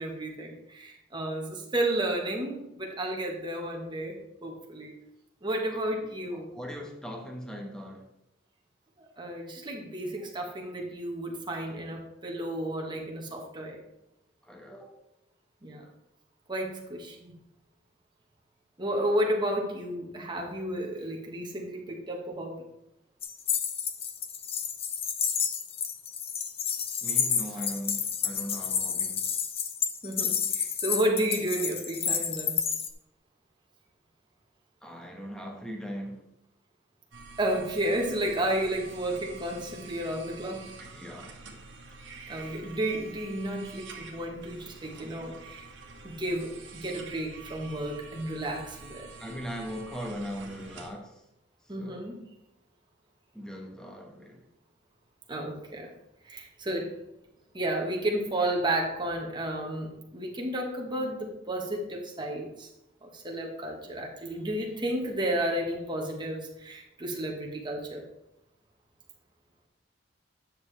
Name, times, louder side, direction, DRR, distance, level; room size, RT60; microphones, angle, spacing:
voice 1, 0.0-4.9 5.4-6.5 9.2-13.8 15.6-15.9 16.5-17.3 18.8-22.6 30.0-32.6 37.4-40.7 42.3-45.6 46.0-49.1 51.7-52.2 55.3-55.9 56.2-56.9 57.5-62.7 63.0-68.0, right 1 dB, 25° right, 1 dB, 1.5 m, -32 dB
voice 2, 6.3-8.1 10.2-10.3 14.5-14.9 27.0-29.3 34.8-36.2 40.8-41.3 49.2-51.1 51.8-52.1 53.3-54.4, equal, 5° left, 2 dB, 1.2 m, -39 dB
sound 1, 23.2-32.9, left 7 dB, 30° left, 0.6 m, -30 dB
sound 2, 37.1-50.9, right 4 dB, 80° right, 1.5 m, -47 dB
9.4 x 6.6 x 3.4 m, 0.86 s
head